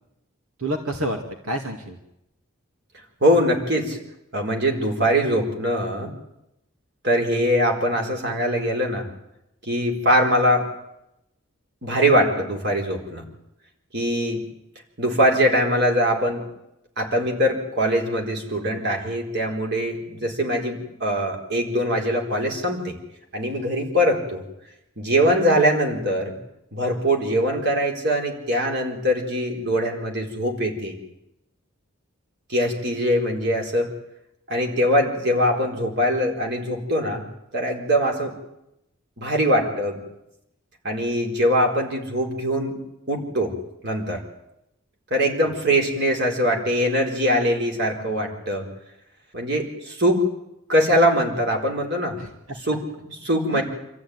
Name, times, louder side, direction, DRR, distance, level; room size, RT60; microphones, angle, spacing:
voice 1, 0.6-2.0 52.2-52.6 53.5-53.6, right 1 dB, 90° right, 4 dB, 2.2 m, -29 dB
voice 2, 3.2-4.0 4.3-6.1 7.0-9.1 9.6-10.7 11.8-13.3 13.9-14.5 15.0-16.4 17.0-23.0 23.3-24.4 25.0-26.3 26.7-31.0 32.5-33.9 34.5-37.2 37.5-38.4 39.2-40.0 40.8-42.7 43.1-43.6 43.8-44.2 45.1-48.7 49.3-50.3 50.7-52.2 52.7-53.6, equal, 50° right, 2 dB, 4.4 m, -22 dB
27.0 x 14.0 x 9.6 m, 0.86 s
head